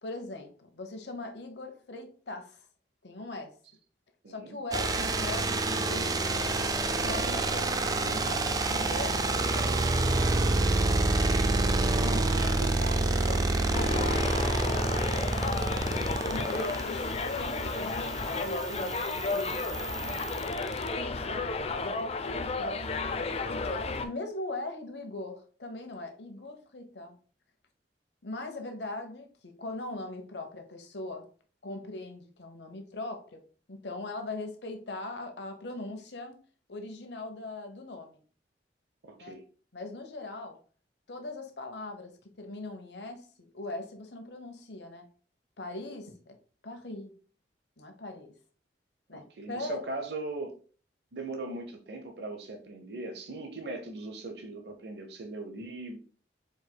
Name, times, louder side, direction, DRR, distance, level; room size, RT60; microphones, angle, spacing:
voice 1, 0.0-2.6 3.0-3.6 4.3-6.6 6.9-9.2 9.5-9.9 11.4-15.1 16.2-19.6 20.0-20.2 20.9-21.5 21.8-22.8 23.5-27.2 28.2-31.3 31.6-33.4 33.7-36.4 36.7-38.2 39.2-39.3 39.7-40.6 41.1-42.1 42.4-45.1 45.6-46.2 46.6-47.1 47.8-48.3 49.1-49.8, left 2 dB, 70° left, 5 dB, 1.0 m, -40 dB
voice 2, 4.2-4.6 11.6-12.7 39.0-39.4 49.1-50.6 51.1-56.0, right 2 dB, 65° right, 3 dB, 0.8 m, -40 dB
sound 1, 4.7-20.9, right 2 dB, 20° right, 0.4 m, -28 dB
Subway metro underground, 13.7-24.1, left 3 dB, 35° left, 0.4 m, -33 dB
4.7 x 4.6 x 2.2 m, 0.40 s
head